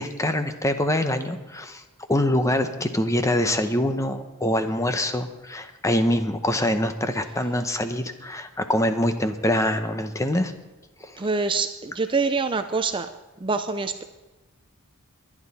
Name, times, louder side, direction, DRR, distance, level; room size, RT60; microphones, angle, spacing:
voice 1, 0.0-1.8 2.1-10.5 11.0-11.2, left 1 dB, 15° left, 8 dB, 0.8 m, -24 dB
voice 2, 11.2-13.1 13.4-14.0, right 4 dB, 25° right, 9 dB, 0.5 m, -25 dB
22.0 x 9.8 x 4.2 m, 1.1 s
head